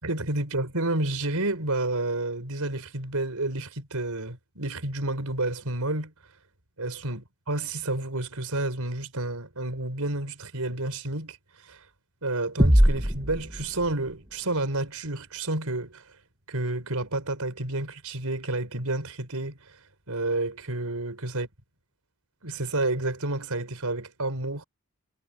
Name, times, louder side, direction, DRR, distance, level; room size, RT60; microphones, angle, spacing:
voice 1, 0.0-6.1 6.8-11.4 11.7-11.8 12.2-16.0 16.5-19.6 20.1-21.5 22.4-24.6, right 2 dB, 90° right, 4.8 m, -30 dB
sound 1, 12.6-14.3, equal, 15° right, 1.8 m, -22 dB
head